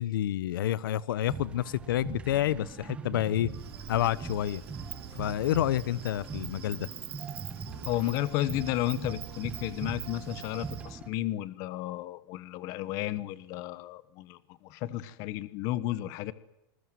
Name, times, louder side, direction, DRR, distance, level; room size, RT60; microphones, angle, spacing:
voice 1, 0.0-3.5 3.9-4.6 5.1-6.9, left 12 dB, 60° left, 19 dB, 1.0 m, -29 dB
sound 1, 1.3-11.1, right 5 dB, 10° right, 0.9 m, -41 dB
Insect, 3.5-10.9, right 10 dB, 80° right, 6.9 m, -45 dB
voice 2, 7.8-16.3, left 14 dB, 25° left, 16 dB, 1.1 m, -33 dB
27.5 x 21.0 x 9.4 m, 0.88 s
supercardioid pair, 180°, 13 cm